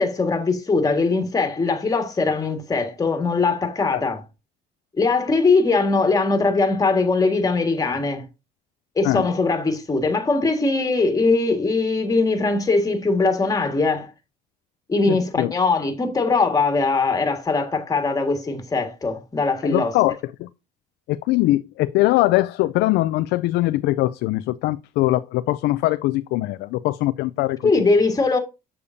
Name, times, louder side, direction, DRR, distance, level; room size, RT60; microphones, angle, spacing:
voice 1, 0.0-4.2 5.0-8.2 8.9-14.1 14.9-19.9 27.6-28.4, left 3 dB, 20° left, 1.7 m, -21 dB
voice 2, 15.1-15.5 19.6-20.1 20.4-20.5 21.1-27.7, left 17 dB, 85° left, 0.4 m, -21 dB
6.9 x 6.9 x 2.6 m
cardioid pair, 110°, 17 cm